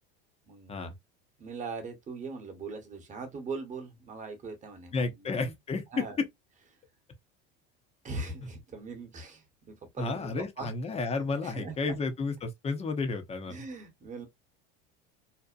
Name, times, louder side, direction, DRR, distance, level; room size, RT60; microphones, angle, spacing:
voice 1, 0.5-0.8 1.4-5.3 5.9-6.2 8.0-10.3 10.6-10.7 11.1-11.7 13.5-14.3, right 4 dB, 25° right, 1.0 m, -40 dB
voice 2, 4.9-6.0 10.0-13.6, left 4 dB, 20° left, 0.7 m, -32 dB
2.7 x 2.0 x 2.4 m
supercardioid pair, 105°, 29 cm